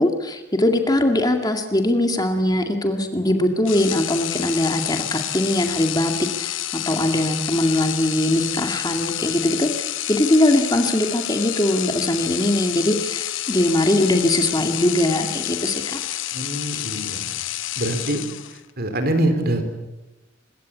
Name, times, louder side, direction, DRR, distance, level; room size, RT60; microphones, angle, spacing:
voice 1, 0.0-6.6 6.9-16.0, left 1 dB, 20° left, 5 dB, 2.2 m, -21 dB
sound 1, 3.6-18.7, left 13 dB, 70° left, 0.9 m, -29 dB
voice 2, 16.3-17.3 17.8-18.2 18.5-19.6, right 1 dB, 50° right, 8 dB, 4.0 m, -24 dB
25.0 x 22.0 x 8.5 m, 1.0 s
head